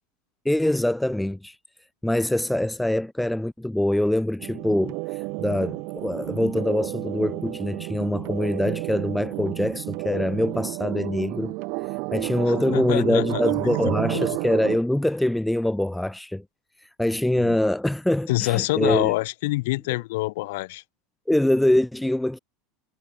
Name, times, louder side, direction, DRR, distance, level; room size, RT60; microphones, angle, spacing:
voice 1, 0.4-1.6 2.0-11.6 11.8-16.4 16.8-19.1 21.3-22.4, left 1 dB, 5° left, 0.6 m, -24 dB
sound 1, 4.4-14.8, right 31 dB, 60° right, 2.6 m, -31 dB
voice 2, 12.7-13.5 14.1-14.3 17.4-17.6 18.3-20.8, left 21 dB, 75° left, 3.0 m, -26 dB
supercardioid pair, 125°, 0 cm